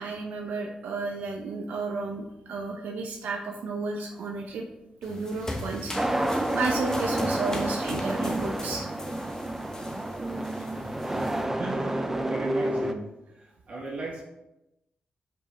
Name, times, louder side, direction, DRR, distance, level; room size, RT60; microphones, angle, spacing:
voice 1, 0.0-4.6 5.0-5.9 6.5-8.9, right 3 dB, 85° right, 1 dB, 0.7 m, -32 dB
sound 1, 5.0-11.4, left 1 dB, 20° left, 1.0 m, -39 dB
sound 2, 5.9-12.9, right 1 dB, 10° right, 0.5 m, -29 dB
voice 2, 10.4-14.2, right 2 dB, 55° right, -4 dB, 1.9 m, -38 dB
5.5 x 5.3 x 4.1 m, 0.91 s
cardioid pair, 95°, 3 cm